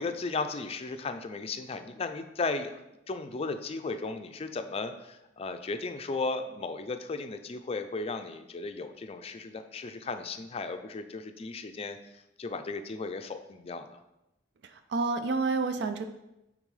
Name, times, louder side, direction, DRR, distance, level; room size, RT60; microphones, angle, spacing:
voice 1, 0.0-2.7 3.1-14.0, left 3 dB, 35° left, 8 dB, 0.4 m, -35 dB
voice 2, 14.6-16.0, right 3 dB, 65° right, 8 dB, 0.4 m, -29 dB
8.8 x 3.8 x 3.2 m, 0.93 s
head